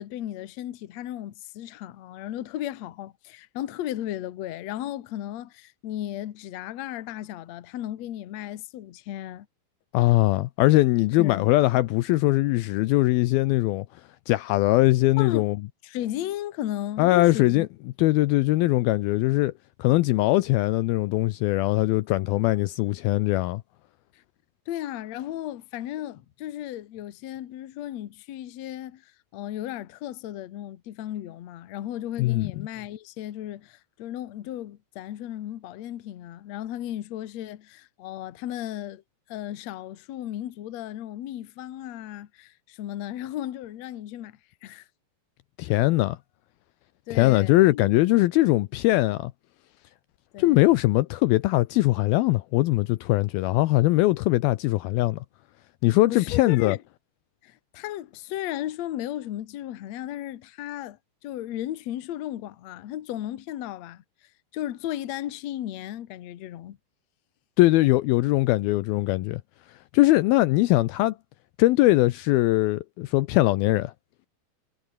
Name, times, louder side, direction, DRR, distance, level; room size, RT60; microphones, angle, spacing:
voice 1, 0.0-9.5 11.2-11.5 15.2-15.5 15.8-17.7 24.1-24.2 24.7-39.0 39.3-44.9 47.1-47.8 50.3-50.7 56.1-56.8 57.4-64.0 64.5-66.8, left 12 dB, 60° left, 1.8 m, -35 dB
voice 2, 9.9-13.9 14.3-15.6 17.0-17.7 18.0-19.5 19.8-23.6 32.2-32.5 45.6-46.2 47.1-49.3 50.4-55.2 55.8-56.8 67.6-69.4 69.9-71.2 71.6-73.9, left 18 dB, 80° left, 2.3 m, -21 dB
omnidirectional pair, 4.8 m